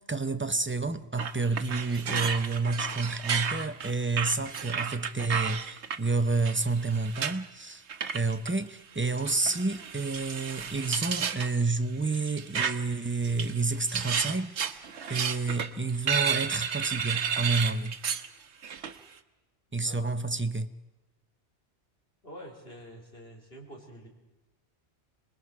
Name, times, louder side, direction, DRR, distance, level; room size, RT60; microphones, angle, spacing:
voice 1, 0.0-7.8 8.1-18.0 19.7-20.7, right 3 dB, 15° right, 0.5 m, -29 dB
sound 1, 1.2-6.0 6.4-7.4 7.9-8.5 9.2-11.5 12.1-12.9 13.2-18.3 18.6-18.9, right 6 dB, 85° right, 1.3 m, -32 dB
voice 2, 19.7-20.1 22.2-24.1, equal, 60° left, 4.4 m, -47 dB
26.5 x 21.5 x 4.7 m
omnidirectional pair, 1.1 m